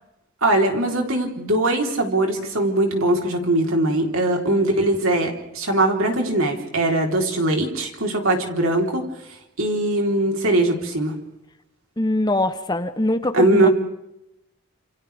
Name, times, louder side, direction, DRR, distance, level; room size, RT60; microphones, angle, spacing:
voice 1, 0.4-9.0 9.6-11.1 13.3-13.7, right 1 dB, 65° right, 2 dB, 3.7 m, -21 dB
voice 2, 12.0-13.7, left 1 dB, 20° left, 10 dB, 0.7 m, -22 dB
29.0 x 28.0 x 3.5 m, 0.86 s
head